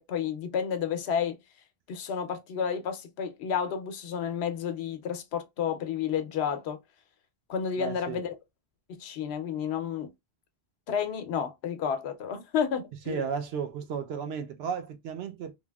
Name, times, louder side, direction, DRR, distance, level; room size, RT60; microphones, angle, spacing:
voice 1, 0.0-1.4 1.9-6.8 7.5-8.4 8.9-10.1 10.9-13.3, left 7 dB, 85° left, 0.9 m, -31 dB
voice 2, 7.8-8.2 13.1-15.5, right 7 dB, 75° right, 0.8 m, -34 dB
3.2 x 2.5 x 2.2 m
omnidirectional pair, 1.1 m